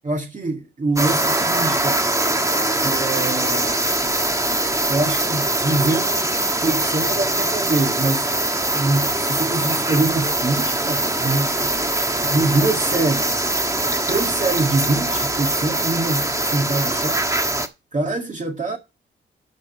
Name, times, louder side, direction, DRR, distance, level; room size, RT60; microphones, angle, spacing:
voice 1, 0.1-2.1 2.8-3.9 4.9-6.3 6.6-8.3 8.6-11.7 12.2-13.5 14.1-17.3 17.9-18.8, right 2 dB, 35° right, 2.1 m, -24 dB
sound 1, 1.0-17.7, right 2 dB, 15° right, 1.5 m, -22 dB
12.0 x 5.3 x 5.6 m
cardioid pair, 80°, 21 cm